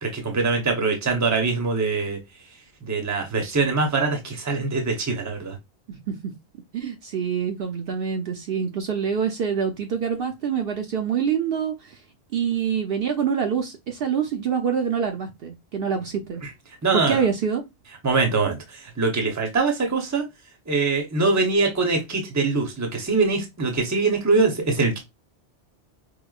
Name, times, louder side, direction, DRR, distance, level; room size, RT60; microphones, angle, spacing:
voice 1, 0.0-2.2 2.8-5.6 16.4-16.5 16.8-17.3 18.0-20.2 20.7-25.0, right 3 dB, 20° right, 0.7 m, -23 dB
voice 2, 6.7-12.0 12.3-16.4 16.9-17.6, right 7 dB, 65° right, 0.7 m, -26 dB
4.7 x 2.1 x 2.3 m
omnidirectional pair, 1.1 m